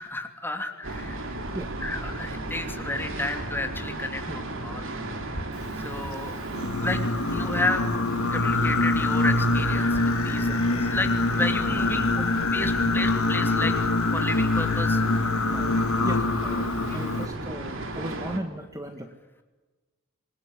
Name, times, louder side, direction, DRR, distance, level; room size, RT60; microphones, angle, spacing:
voice 1, 0.0-1.4 1.8-5.0 5.8-6.3 6.8-7.0 7.3-7.9 8.3-10.5 10.9-12.1 12.5-13.7 14.1-15.5 16.9-17.0, left 2 dB, 10° left, 5 dB, 2.9 m, -32 dB
sound 1, 0.8-18.4, right 2 dB, 65° right, 3.4 m, -35 dB
Singing, 6.5-17.3, left 2 dB, 80° left, 1.6 m, -25 dB
voice 2, 15.5-19.1, right 1 dB, 15° right, 6 dB, 1.6 m, -37 dB
27.0 x 21.0 x 9.9 m, 1.2 s
head